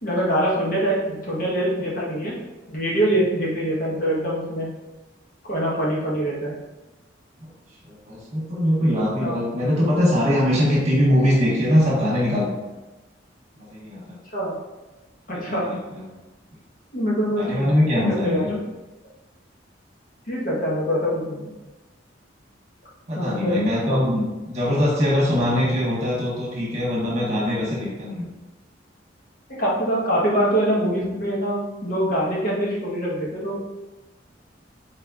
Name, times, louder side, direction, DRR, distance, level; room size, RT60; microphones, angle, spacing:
voice 1, 0.0-2.4 2.7-4.7 5.4-6.5 9.2-9.4 14.3-14.5 15.3-15.7 16.9-18.6 20.3-21.5 23.1-23.6 23.9-24.0 29.6-33.8, equal, 50° left, -5 dB, 1.3 m, -24 dB
voice 2, 7.8-12.5 13.6-14.1 15.3-16.0 17.4-18.5 23.1-28.3, left 1 dB, 35° right, -5 dB, 1.4 m, -22 dB
4.2 x 4.2 x 2.5 m, 1.1 s
head